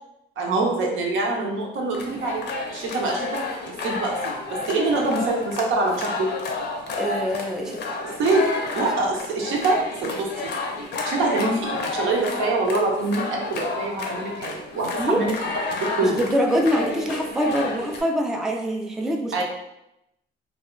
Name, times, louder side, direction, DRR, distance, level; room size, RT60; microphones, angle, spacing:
voice 1, 0.4-2.4 2.7-4.3 4.7-6.3 8.2-10.5 11.0-15.3 15.7-16.2 19.3-19.4, right 2 dB, 75° right, 0 dB, 0.7 m, -25 dB
sound 1, 1.9-18.0, left 3 dB, 60° left, 0.6 m, -31 dB
voice 2, 7.0-7.9 15.0-15.2 16.0-19.4, equal, ahead, 1 dB, 0.3 m, -24 dB
2.2 x 2.0 x 3.7 m, 0.86 s
cardioid pair, 90°, 20 cm